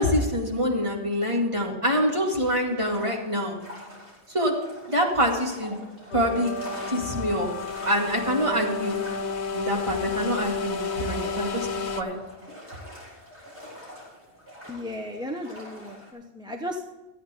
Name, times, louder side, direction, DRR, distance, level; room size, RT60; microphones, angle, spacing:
voice 1, 0.0-3.6 4.3-4.6 4.9-5.8 6.1-6.5 6.9-7.5 7.8-9.0 9.5-11.7 12.0-12.2, equal, 30° right, -1 dB, 2.3 m, -25 dB
sound 1, 2.1-16.1, equal, 85° right, 4.4 m, -45 dB
sound 2, 6.1-12.0, left 4 dB, 80° left, 1.0 m, -31 dB
voice 2, 14.7-16.9, left 1 dB, 5° right, 2 dB, 0.8 m, -35 dB
14.0 x 9.1 x 4.4 m, 1.2 s
omnidirectional pair, 1.1 m